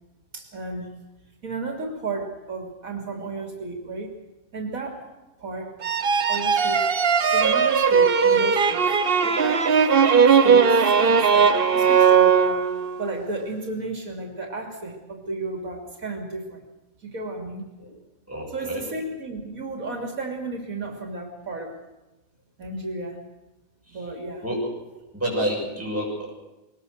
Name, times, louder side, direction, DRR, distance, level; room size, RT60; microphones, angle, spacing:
voice 1, 0.3-0.9 1.4-4.2 4.5-5.1 5.4-5.7 6.3-6.9 7.3-8.8 9.2-9.7 10.3-12.6 13.0-16.6 17.0-17.7 18.5-21.7 22.6-23.2 23.9-24.4, right 2 dB, 85° right, 3 dB, 3.4 m, -33 dB
sound 1, 5.8-13.0, right 6 dB, 45° right, 1.1 m, -18 dB
voice 2, 18.3-18.8 23.9-24.1 24.4-24.7 25.1-26.3, equal, 10° right, -3 dB, 6.9 m, -29 dB
22.5 x 19.5 x 6.6 m, 1.0 s
omnidirectional pair, 1.4 m